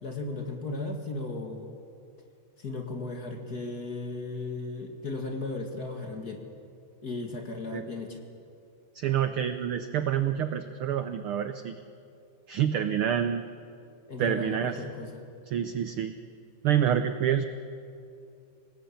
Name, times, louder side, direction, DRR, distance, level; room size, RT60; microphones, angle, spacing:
voice 1, 0.0-1.7 2.6-6.4 7.0-8.2 14.1-15.2, left 3 dB, 35° left, 3 dB, 2.1 m, -36 dB
voice 2, 8.9-11.7 12.5-13.4 14.2-14.8 15.5-16.1 16.6-17.4, right 9 dB, 80° right, 9 dB, 1.2 m, -27 dB
25.5 x 18.5 x 8.7 m, 2.5 s
omnidirectional pair, 3.4 m